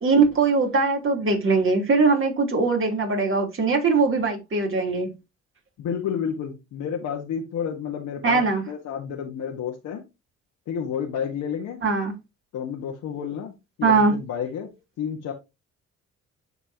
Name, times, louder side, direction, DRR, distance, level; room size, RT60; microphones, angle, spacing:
voice 1, 0.0-5.1 8.2-8.6 11.8-12.1 13.8-14.1, right 4 dB, 45° right, 3.4 m, -21 dB
voice 2, 5.8-10.0 10.7-11.8 12.5-14.7 15.0-15.3, left 7 dB, 80° left, 1.6 m, -30 dB
12.5 x 4.4 x 2.9 m
cardioid pair, 90°, 30 cm